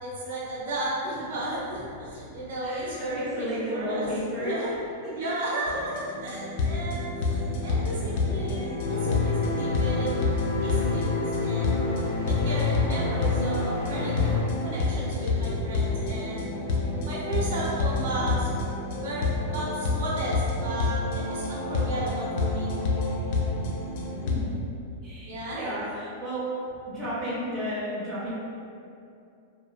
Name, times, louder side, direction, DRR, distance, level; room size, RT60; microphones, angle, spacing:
voice 1, 0.0-3.5 3.7-4.7 5.1-10.1 10.6-11.9 12.2-16.5 17.1-18.5 19.0-22.8 25.2-25.9, right 1 dB, 70° right, -6 dB, 0.7 m, -34 dB
voice 2, 2.6-4.6 5.0-5.3 7.8-8.0 24.2-24.6 25.0-26.4 26.9-28.3, equal, 10° right, -14 dB, 0.6 m, -33 dB
sound 1, 5.7-24.3, left 3 dB, 55° left, 0.4 m, -28 dB
sound 2, 8.8-14.4, left 3 dB, 70° left, 0.8 m, -30 dB
3.1 x 2.2 x 2.2 m, 2.5 s
supercardioid pair, 150°, 0 cm